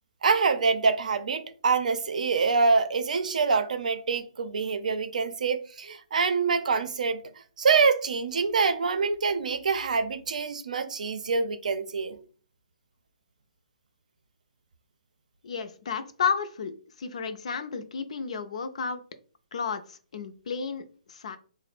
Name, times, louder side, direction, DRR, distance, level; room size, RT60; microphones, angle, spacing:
voice 1, 0.2-12.2, right 4 dB, 70° right, 0.5 m, -25 dB
voice 2, 15.4-19.0 19.5-21.4, left 6 dB, 55° left, 0.5 m, -32 dB
3.7 x 2.0 x 4.2 m
hypercardioid pair, 170°, 4 cm